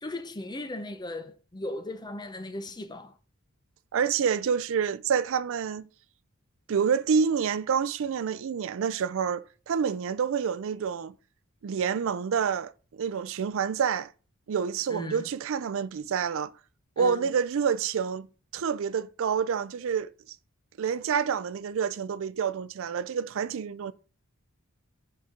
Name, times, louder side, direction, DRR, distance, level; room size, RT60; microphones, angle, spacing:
voice 1, 0.0-3.2 14.9-15.3 17.0-17.3, left 2 dB, 20° left, 0.6 m, -37 dB
voice 2, 3.9-5.9 6.7-11.1 11.6-12.7 13.0-14.1 14.5-16.5 17.0-18.3 18.5-20.1 20.8-23.9, right 6 dB, 60° right, 0.4 m, -28 dB
10.5 x 4.2 x 3.7 m
head